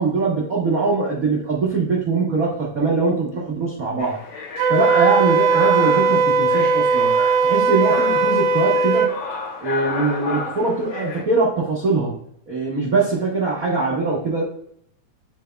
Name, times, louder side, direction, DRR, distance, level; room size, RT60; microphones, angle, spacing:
voice 1, 0.0-4.2 4.7-7.1 7.4-9.1 9.6-12.1 12.5-14.4, right 3 dB, 60° right, -5 dB, 0.9 m, -22 dB
sound 1, 4.0-11.2, left 4 dB, 65° left, 2.0 m, -31 dB
Wind instrument woodwind instrument, 4.6-9.1, right 4 dB, 75° right, 2.0 m, -18 dB
10.0 x 4.1 x 2.3 m, 0.69 s
omnidirectional pair, 3.5 m